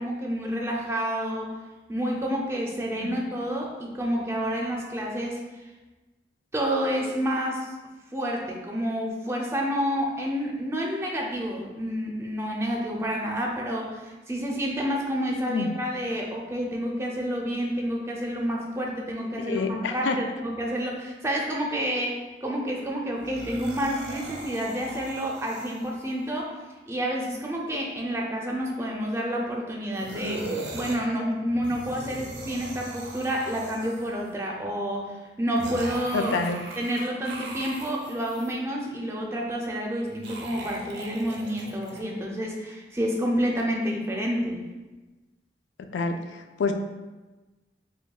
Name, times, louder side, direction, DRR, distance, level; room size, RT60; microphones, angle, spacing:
voice 1, 0.0-1.5 1.9-5.4 6.5-7.7 8.1-26.5 26.9-36.4 36.8-44.6, equal, 15° right, -1 dB, 0.4 m, -29 dB
voice 2, 19.4-20.2 36.1-36.6 45.9-46.2 46.6-46.7, left 4 dB, 80° left, 7 dB, 0.3 m, -27 dB
sound 1, 23.2-26.2 29.9-31.0 31.5-34.3 35.6-38.5 40.1-42.0, right 2 dB, 70° right, 0.5 m, -39 dB
6.4 x 2.2 x 2.3 m, 1.2 s
head